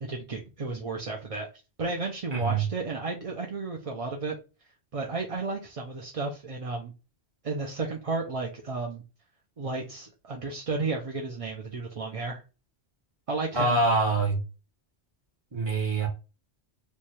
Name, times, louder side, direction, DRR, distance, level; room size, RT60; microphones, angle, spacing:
voice 1, 0.0-1.5 1.8-4.3 4.9-6.9 7.4-9.0 9.6-12.4 13.3-13.8, right 3 dB, 40° right, 0.5 m, -33 dB
voice 2, 2.3-2.6 13.5-14.4 15.5-16.1, right 3 dB, 25° right, 1.2 m, -25 dB
3.2 x 2.3 x 4.1 m
omnidirectional pair, 1.1 m